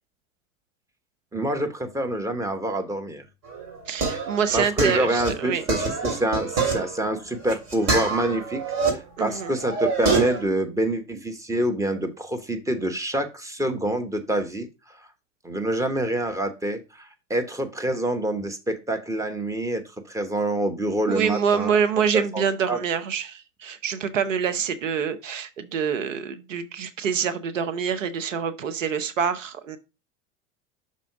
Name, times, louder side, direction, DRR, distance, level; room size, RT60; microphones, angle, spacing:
voice 1, 1.3-3.2 4.5-14.7 15.4-19.8 20.1-21.8 22.1-22.8, right 1 dB, 10° right, 1.2 m, -26 dB
sound 1, 3.5-8.9 9.3-10.4, right 4 dB, 40° right, 3.1 m, -26 dB
voice 2, 3.9-5.6 9.2-9.5 21.1-29.8, right 7 dB, 85° right, 0.8 m, -26 dB
6.1 x 4.1 x 4.6 m
hypercardioid pair, 90°, 37 cm